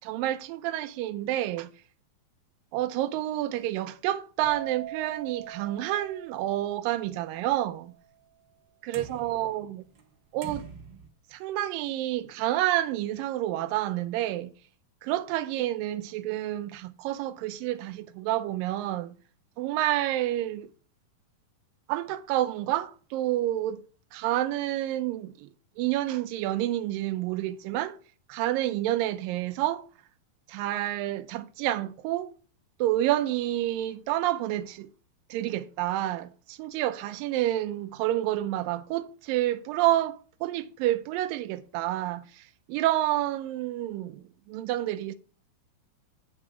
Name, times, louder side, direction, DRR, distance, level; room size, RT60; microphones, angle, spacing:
voice 1, 0.0-1.8 2.7-8.0 8.8-9.8 10.3-10.7 11.3-14.5 15.0-19.2 19.6-20.7 21.9-23.8 24.1-25.5 25.8-28.0 28.3-29.9 30.5-32.3 32.8-34.9 35.3-45.2, right 14 dB, 85° right, 2.2 m, -29 dB
sound 1, 4.4-8.1, right 12 dB, 10° left, 2.5 m, -43 dB
sound 2, 5.5-5.6 6.0-6.1 8.9-10.2 10.4-11.1, right 5 dB, 55° right, 1.3 m, -44 dB
9.9 x 5.6 x 4.9 m
omnidirectional pair, 4.1 m